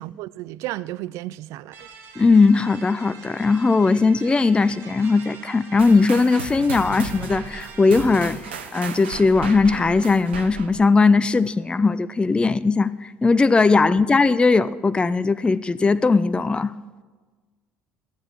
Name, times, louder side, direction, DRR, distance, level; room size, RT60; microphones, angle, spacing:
voice 1, 0.0-1.9 13.8-14.0, right 16 dB, 60° right, 0.4 m, -33 dB
sound 1, 1.7-8.3, right 6 dB, 45° right, 2.3 m, -44 dB
voice 2, 2.2-8.4 8.7-16.7, left 4 dB, 15° left, 0.4 m, -19 dB
sound 2, 5.8-10.9, right 6 dB, 80° right, 0.9 m, -35 dB
15.0 x 8.7 x 6.2 m
figure-of-eight pair, 60°, 6 cm